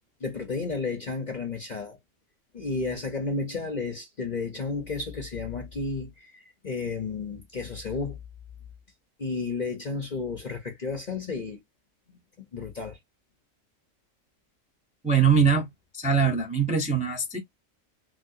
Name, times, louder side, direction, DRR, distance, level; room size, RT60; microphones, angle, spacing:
voice 1, 0.2-2.0 2.5-8.2 9.2-11.6 12.1-12.2 12.5-13.0, left 4 dB, 40° left, 0.8 m, -32 dB
voice 2, 15.0-15.7 15.9-17.4, right 6 dB, 5° right, 0.6 m, -22 dB
3.1 x 3.0 x 2.7 m
omnidirectional pair, 1.4 m